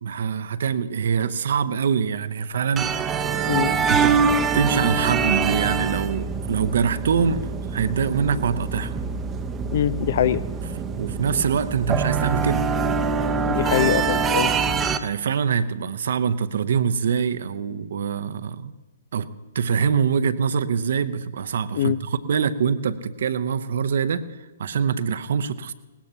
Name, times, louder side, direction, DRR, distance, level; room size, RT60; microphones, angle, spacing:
voice 1, 0.0-3.6 3.9-4.2 4.5-9.0 11.0-12.7 14.9-18.7 19.1-19.3 19.5-24.3 24.6-25.7, right 6 dB, 55° right, 13 dB, 0.8 m, -24 dB
sound 1, 2.8-15.0, right 5 dB, 15° right, 0.7 m, -24 dB
voice 2, 9.7-10.4 13.5-14.5 21.7-22.0, left 10 dB, 50° left, 19 dB, 0.5 m, -23 dB
20.0 x 18.5 x 2.9 m, 1.2 s
figure-of-eight pair, 120°, 0 cm